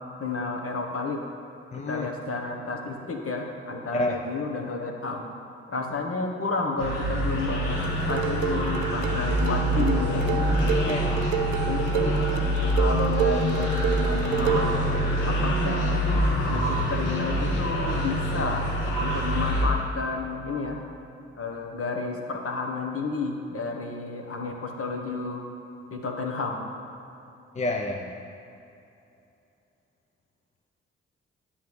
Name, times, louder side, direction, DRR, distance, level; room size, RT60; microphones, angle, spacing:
voice 1, 0.2-1.2 1.7-5.3 5.7-10.3 11.6-12.2 12.7-14.9 15.2-18.7 18.9-20.8 21.4-25.4 25.9-26.7, left 3 dB, 45° left, 2 dB, 1.3 m, -31 dB
voice 2, 1.7-2.1 3.9-4.2 10.7-11.2 27.5-28.1, left 2 dB, 20° left, 2 dB, 0.7 m, -29 dB
sound 1, 6.8-19.7, equal, 75° left, 1.4 m, -25 dB
sound 2, 7.8-14.8, right 8 dB, 85° right, 0.5 m, -30 dB
10.0 x 5.7 x 4.9 m, 2.8 s
hypercardioid pair, 40°, 31 cm